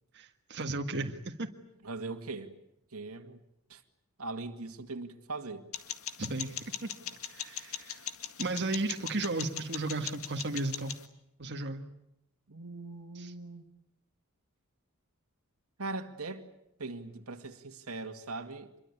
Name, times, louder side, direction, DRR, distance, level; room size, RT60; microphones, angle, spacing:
voice 1, 0.1-1.5 6.2-6.9 7.3-8.1 8.4-10.9 11.4-11.8 13.1-13.3, right 2 dB, 55° right, 1.7 m, -35 dB
voice 2, 1.8-2.5 2.9-3.4 3.7-3.8 4.2-5.6 12.5-13.7 15.8-16.5 16.8-18.7, right 3 dB, 85° right, 2.2 m, -40 dB
sound 1, 5.7-11.0, left 9 dB, 70° left, 1.9 m, -41 dB
26.5 x 23.0 x 8.5 m
head